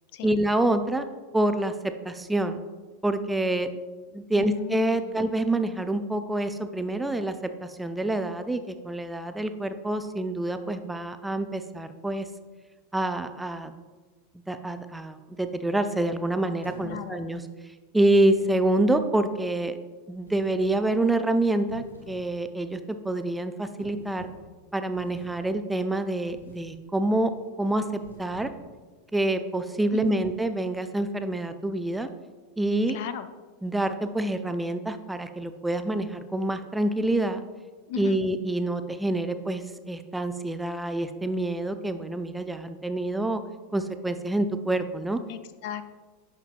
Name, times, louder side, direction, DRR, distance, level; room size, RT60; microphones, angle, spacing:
voice 1, 0.2-1.1 1.3-1.7 2.0-2.6 3.0-3.7 4.1-7.3 7.6-12.3 12.9-13.7 14.5-17.4 17.9-19.8 20.1-24.3 24.7-27.3 27.6-28.5 29.1-32.1 32.6-33.0 33.6-37.4 38.0-43.4 43.7-45.2, right 1 dB, 5° right, 9 dB, 0.4 m, -27 dB
voice 2, 4.3-5.2 16.8-17.3 29.9-30.2 32.9-33.3 37.9-38.2 45.3-45.9, left 9 dB, 55° left, 11 dB, 0.4 m, -37 dB
sound 1, 16.6-17.3 18.3-19.3 20.2-20.9 21.5-22.3 22.7-22.9 23.8-24.5 24.9-25.5 26.3-26.7 27.1-27.4 27.9-28.8, right 2 dB, 90° left, 1.3 m, -50 dB
10.5 x 5.9 x 2.4 m, 1.3 s
figure-of-eight pair, 85°, 0 cm